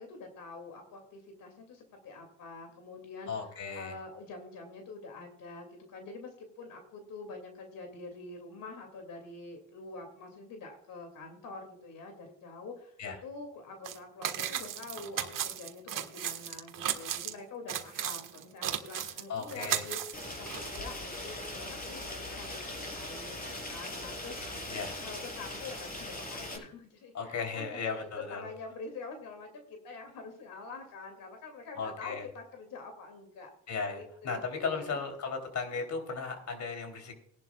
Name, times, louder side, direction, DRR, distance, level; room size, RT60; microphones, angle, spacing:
voice 1, 0.0-3.3 3.7-13.0 13.2-24.4 25.0-33.5 33.9-35.0, left 3 dB, 90° left, 4 dB, 2.6 m, -46 dB
voice 2, 3.3-4.0 13.0-13.2 19.3-19.9 24.7-25.0 27.1-28.5 31.8-32.3 33.7-37.1, left 5 dB, 60° left, 5 dB, 3.5 m, -36 dB
sound 1, 13.8-14.0 14.2-17.3 17.7-20.8, right 10 dB, 75° right, 1.5 m, -35 dB
Rain, 20.1-26.6, left 1 dB, 25° left, 4.5 m, -40 dB
19.5 x 11.5 x 2.4 m, 0.70 s
cardioid pair, 110°, 33 cm